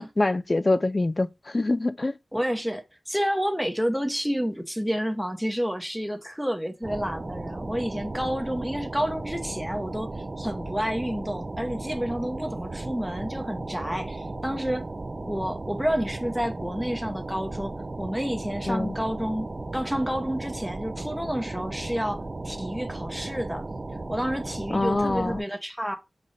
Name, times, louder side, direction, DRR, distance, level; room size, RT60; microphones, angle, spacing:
voice 1, 0.0-2.1 18.7-18.9 24.7-25.4, left 2 dB, 35° left, 0.3 m, -25 dB
voice 2, 2.3-14.8 15.2-19.5 19.7-23.6 24.1-25.9, equal, ahead, 0.7 m, -30 dB
sound 1, 6.8-25.4, right 2 dB, 40° right, 0.5 m, -35 dB
5.1 x 2.6 x 4.0 m
wide cardioid pair, 65°, 0 cm